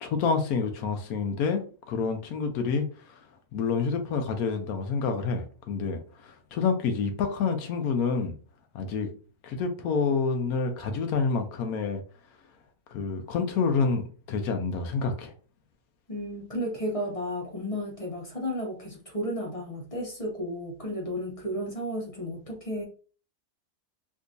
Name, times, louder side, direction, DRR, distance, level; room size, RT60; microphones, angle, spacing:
voice 1, 0.0-1.6 1.9-3.2 3.5-8.3 8.7-9.1 9.4-12.0 12.9-15.3, left 5 dB, 80° left, 1.1 m, -28 dB
voice 2, 16.1-22.8, equal, 40° left, 0.5 m, -33 dB
3.7 x 2.7 x 2.5 m
omnidirectional pair, 1.6 m